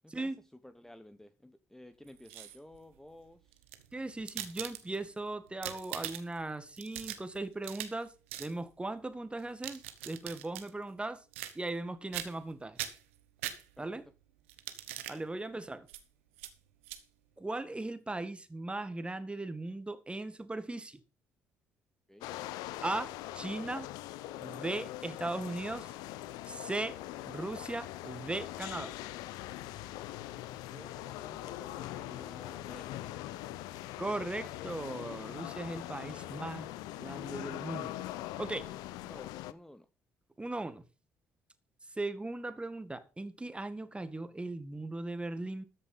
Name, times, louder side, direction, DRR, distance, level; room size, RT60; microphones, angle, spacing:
voice 1, 0.6-3.6 13.8-14.0 15.2-15.3 22.1-22.3 30.7-33.2 36.0-36.3 39.1-39.9, left 1 dB, 5° left, 1.0 m, -53 dB
sound 1, 2.1-2.8 3.5-5.1 5.5-6.4 6.8-8.0 8.3-8.5 9.4-10.7 11.3-11.8 12.1-12.5 12.8-14.0 14.5-15.2 15.9-16.0 16.4-16.5 16.8-17.0, right 13 dB, 90° right, 1.2 m, -42 dB
voice 2, 3.9-8.1 8.4-11.2 11.5-12.8 13.8-14.1 15.1-15.9 17.4-21.0 22.8-23.9 24.4-25.9 26.4-27.0 27.3-29.0 34.0-36.7 37.0-38.0 38.4-38.7 40.4-40.8 42.0-45.6, right 2 dB, 15° right, 2.0 m, -38 dB
sound 2, 22.2-39.5, left 15 dB, 75° left, 0.7 m, -42 dB
13.5 x 6.7 x 5.5 m
hypercardioid pair, 55°, 7 cm